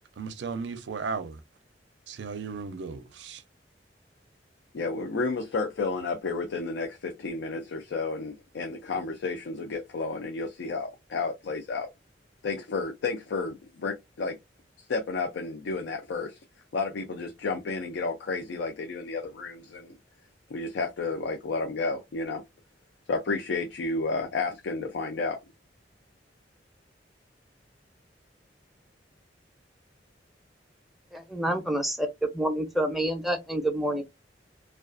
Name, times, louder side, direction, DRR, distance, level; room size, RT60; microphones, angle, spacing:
voice 1, 0.2-1.4 2.1-3.4, right 5 dB, 75° right, 0.4 m, -35 dB
voice 2, 4.7-11.9 12.4-14.4 14.9-16.4 16.7-20.0 20.5-22.4 23.1-25.4, left 3 dB, 75° left, 0.4 m, -31 dB
voice 3, 31.1-34.0, right 1 dB, ahead, 0.5 m, -28 dB
2.3 x 2.3 x 2.4 m
head